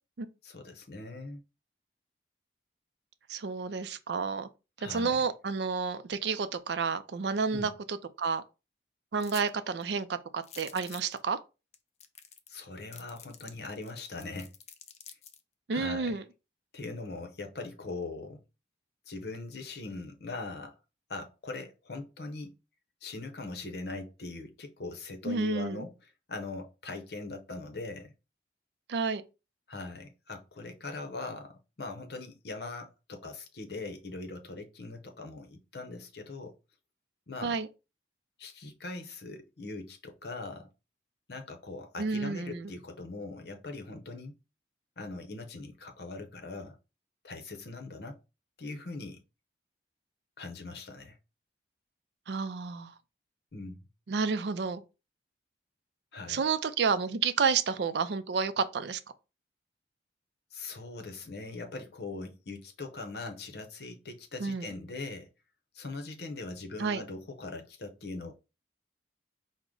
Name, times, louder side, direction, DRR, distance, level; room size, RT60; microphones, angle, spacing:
voice 1, 0.4-1.4 4.8-5.2 7.5-7.7 12.5-14.5 15.7-16.2 16.7-18.4 19.1-20.7 21.1-22.5 23.0-25.9 26.3-28.1 29.7-36.5 37.3-37.6 38.4-40.7 41.3-44.4 45.0-46.8 47.2-48.2 48.6-49.2 50.4-51.2 53.5-53.8 56.1-56.4 60.5-65.3 65.7-68.3, left 3 dB, 60° left, 0.8 m, -41 dB
voice 2, 3.3-4.5 4.9-8.4 9.1-10.1 10.3-11.4 15.7-16.2 25.2-25.8 28.9-29.2 37.4-37.7 42.0-42.7 52.3-52.9 54.1-54.8 56.3-59.0 64.4-64.7 66.8-67.0, right 5 dB, 70° right, 0.4 m, -30 dB
sound 1, 9.2-9.5 9.8-9.9 10.4-11.2 11.7-11.8 12.0-12.6 12.9-15.4, left 8 dB, 35° left, 0.4 m, -48 dB
4.7 x 2.1 x 3.7 m
head